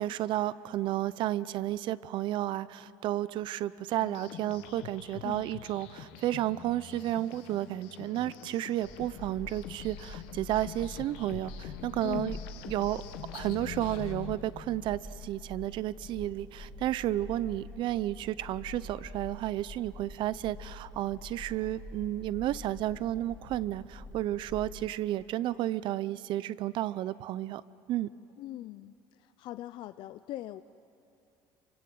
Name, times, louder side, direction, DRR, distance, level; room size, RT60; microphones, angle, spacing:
voice 1, 0.0-12.4 12.7-13.0 13.3-27.6 27.9-28.1, right 14 dB, 60° right, 17 dB, 0.7 m, -32 dB
sound 1, 4.0-14.4, left 11 dB, 75° left, 1.4 m, -45 dB
sound 2, 8.8-24.7, left 2 dB, 15° left, 3.3 m, -46 dB
voice 2, 28.4-30.6, left 15 dB, 60° left, 12 dB, 0.5 m, -40 dB
27.5 x 25.0 x 7.9 m, 2.7 s
supercardioid pair, 110°, 9 cm